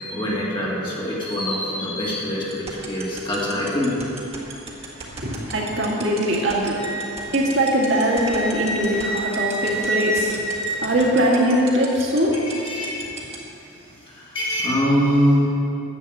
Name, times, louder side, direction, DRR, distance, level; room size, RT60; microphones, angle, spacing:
voice 1, 0.0-3.9 12.4-13.1 14.2-15.5, equal, 25° left, -6 dB, 2.2 m, -23 dB
sound 1, 2.5-13.4, right 5 dB, 30° right, 1.5 m, -35 dB
voice 2, 5.2-6.9 7.3-10.5 10.8-12.4, right 1 dB, 60° right, -3 dB, 2.1 m, -21 dB
Wind instrument woodwind instrument, 6.7-11.3, right 1 dB, 5° left, 3.0 m, -29 dB
10.5 x 6.9 x 7.9 m, 2.8 s
head